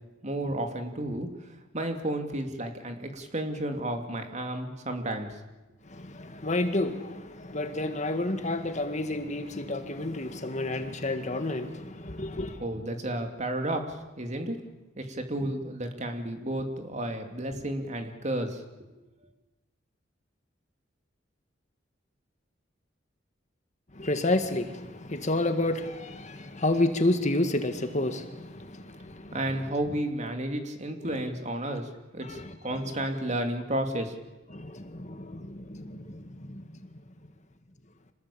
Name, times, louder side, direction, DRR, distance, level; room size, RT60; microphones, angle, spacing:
voice 1, 0.2-1.3 1.7-5.4 12.6-14.6 15.0-18.6 29.3-32.4 32.6-34.1, right 1 dB, 40° right, 2.9 m, -32 dB
voice 2, 5.8-12.6 23.9-29.4 32.2-32.6 34.5-36.6, left 2 dB, 40° left, 1.9 m, -30 dB
26.5 x 20.0 x 8.7 m
head